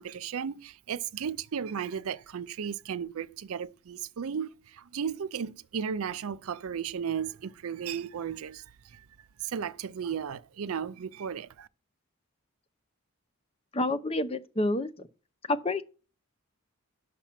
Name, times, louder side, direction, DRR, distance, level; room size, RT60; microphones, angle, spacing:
voice 1, 0.0-9.0 9.4-11.7, right 7 dB, 80° right, 0.4 m, -35 dB
voice 2, 13.7-15.1 15.5-15.8, left 2 dB, 25° left, 0.6 m, -28 dB
10.0 x 5.9 x 5.8 m
head